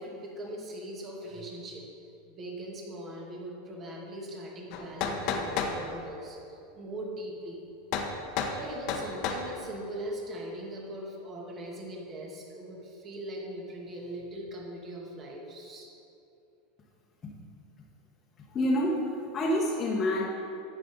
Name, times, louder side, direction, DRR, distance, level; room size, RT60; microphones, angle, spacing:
voice 1, 0.0-1.8 2.3-7.6 8.5-15.9, right 1 dB, 35° right, -1 dB, 2.4 m, -40 dB
sound 1, 4.7-5.8 7.9-8.1 8.4-8.6 8.9-9.4, left 6 dB, 55° left, 1.2 m, -30 dB
voice 2, 18.5-20.3, left 1 dB, 30° left, -3 dB, 1.3 m, -27 dB
11.5 x 8.4 x 4.0 m, 2.7 s
hypercardioid pair, 100°, 0 cm